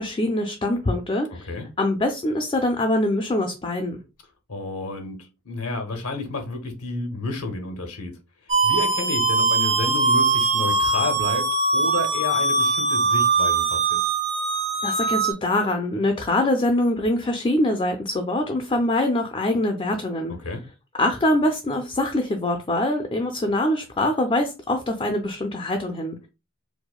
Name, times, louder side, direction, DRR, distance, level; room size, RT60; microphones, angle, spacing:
voice 1, 0.0-1.5 1.8-4.0 14.8-20.3 21.0-26.2, left 1 dB, 25° left, 0.4 m, -24 dB
voice 2, 4.5-8.2 8.6-14.0 20.4-20.6, left 3 dB, 85° left, 0.8 m, -30 dB
sound 1, 8.5-15.3, right 3 dB, 30° right, 0.6 m, -21 dB
4.7 x 2.1 x 2.3 m
head